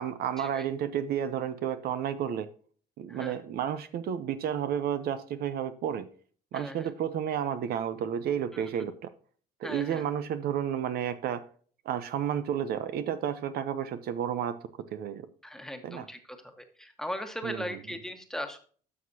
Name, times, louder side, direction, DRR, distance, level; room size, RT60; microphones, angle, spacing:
voice 1, 0.0-2.5 3.0-6.1 6.5-9.1 9.6-11.4 11.8-14.6 14.9-15.2 15.8-16.1 17.4-18.0, right 9 dB, 65° right, 11 dB, 0.8 m, -31 dB
voice 2, 6.5-6.9 8.5-8.7 9.6-10.0 15.4-18.6, equal, 5° left, 5 dB, 1.4 m, -38 dB
12.5 x 6.2 x 2.8 m, 0.44 s
cardioid pair, 110°, 17 cm